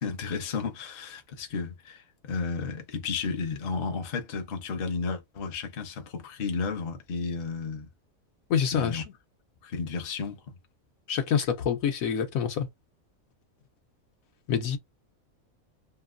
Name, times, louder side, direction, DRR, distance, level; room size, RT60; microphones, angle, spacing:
voice 1, 0.0-7.9 8.7-9.0 9.6-10.4, left 5 dB, 50° left, 0.8 m, -33 dB
voice 2, 8.5-9.0 11.1-12.7 14.5-14.8, left 7 dB, 80° left, 1.1 m, -26 dB
2.9 x 2.6 x 2.5 m
omnidirectional pair, 1.4 m